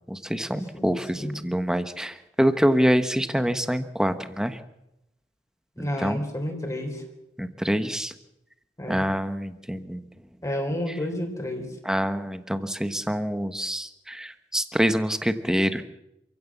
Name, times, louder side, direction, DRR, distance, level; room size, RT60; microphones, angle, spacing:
voice 1, 0.1-4.6 5.8-6.2 7.4-8.1 8.9-10.0 11.8-15.8, equal, 5° right, 9 dB, 1.3 m, -26 dB
voice 2, 0.7-1.4 5.8-7.0 8.8-9.0 10.4-11.7, left 1 dB, 20° left, 2 dB, 3.9 m, -30 dB
27.5 x 16.0 x 7.3 m, 0.86 s
head